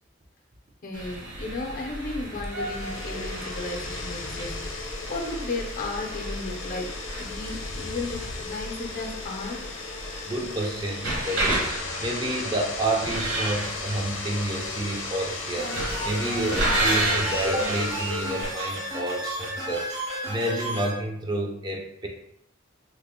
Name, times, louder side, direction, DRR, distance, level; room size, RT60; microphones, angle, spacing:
voice 1, 0.8-9.6, left 2 dB, 45° left, 1 dB, 0.6 m, -34 dB
sound 1, 0.9-18.5, right 1 dB, 65° right, 1.0 m, -33 dB
sound 2, 2.4-18.9, left 3 dB, 85° left, 0.6 m, -36 dB
voice 2, 10.3-15.7 16.0-22.1, right 1 dB, 20° right, 1 dB, 0.4 m, -29 dB
sound 3, 15.6-20.9, equal, 80° right, 1.4 m, -32 dB
3.3 x 2.1 x 3.5 m, 0.73 s
head